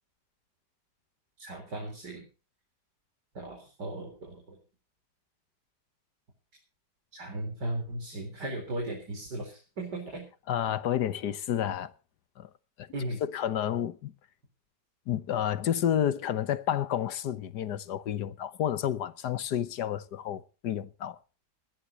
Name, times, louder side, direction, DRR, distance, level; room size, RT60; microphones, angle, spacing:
voice 1, 1.4-2.3 3.3-4.6 7.1-10.2 12.9-13.2, right 1 dB, 85° right, 4.8 m, -37 dB
voice 2, 10.5-11.9 12.4-12.5 12.8-12.9 13.2-14.1 15.1-21.2, left 10 dB, 80° left, 1.5 m, -30 dB
21.0 x 16.5 x 2.9 m
omnidirectional pair, 1.8 m